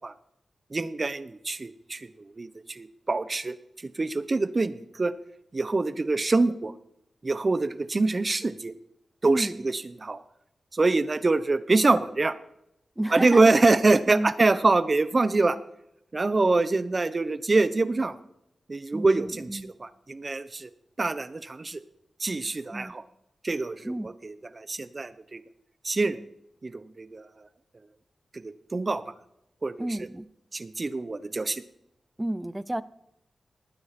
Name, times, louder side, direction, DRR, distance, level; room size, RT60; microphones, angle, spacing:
voice 1, 0.7-2.1 2.4-3.5 3.8-5.1 5.5-6.7 7.2-8.7 9.2-10.2 10.7-12.4 13.1-15.6 16.1-18.2 18.7-20.7 21.0-21.8 22.2-23.0 23.4-25.4 25.8-26.2 26.6-27.3 28.4-29.0 29.6-29.9 30.5-31.6, right 3 dB, 45° right, 14 dB, 1.0 m, -25 dB
voice 2, 9.2-9.7 13.0-13.5 14.1-14.3 18.9-19.7 22.7-22.9 23.8-24.1 29.8-30.3 32.2-32.8, right 1 dB, 15° right, 17 dB, 0.7 m, -31 dB
19.5 x 9.6 x 4.4 m, 0.80 s
cardioid pair, 50°, 0 cm